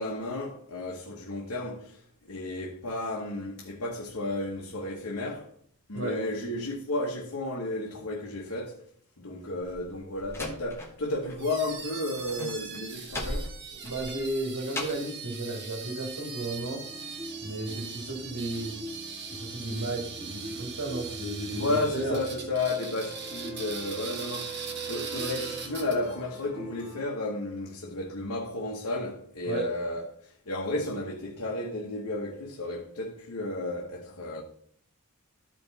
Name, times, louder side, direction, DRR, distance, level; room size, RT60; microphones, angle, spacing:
voice 1, 0.0-2.0 2.3-5.5 5.9-8.8 9.2-13.5 21.5-34.4, left 2 dB, 65° left, 1.2 m, -33 dB
Slam, 9.6-11.4 11.7-15.2, left 1 dB, 10° left, 1.3 m, -38 dB
sound 1, 11.4-26.2, right 5 dB, 50° right, 1.4 m, -41 dB
voice 2, 13.8-16.9 17.4-18.8 19.3-22.2 29.4-29.7, right 2 dB, 80° right, 2.5 m, -33 dB
sound 2, 16.4-27.0, right 3 dB, 20° right, 2.0 m, -43 dB
12.5 x 5.2 x 4.0 m
head